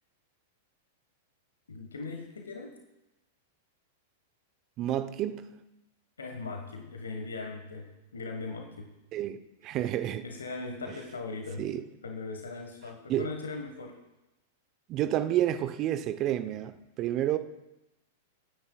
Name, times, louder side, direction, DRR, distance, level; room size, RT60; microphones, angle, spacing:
voice 1, 1.7-2.7 6.2-8.9 10.2-11.6 12.0-14.0, left 3 dB, 80° left, 1.4 m, -39 dB
voice 2, 4.8-5.6 9.1-10.2 11.6-11.9 13.1-13.3 14.9-17.4, right 12 dB, 40° right, 0.8 m, -30 dB
27.5 x 9.7 x 2.4 m
figure-of-eight pair, 100°, 0 cm